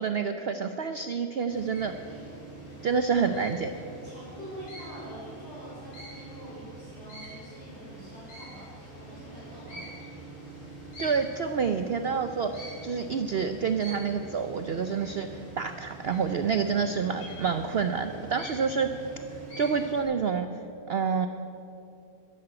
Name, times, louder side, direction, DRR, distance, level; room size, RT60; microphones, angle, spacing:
voice 1, 0.0-2.3 2.8-3.7 11.0-18.9 19.6-20.5 20.9-21.3, right 6 dB, 80° right, 8 dB, 0.5 m, -28 dB
sound 1, 1.5-20.0, right 2 dB, 90° left, 4.9 m, -44 dB
voice 2, 3.0-3.4 4.0-9.9, equal, 40° left, -6 dB, 3.8 m, -45 dB
13.0 x 11.0 x 8.7 m, 2.8 s
omnidirectional pair, 1.8 m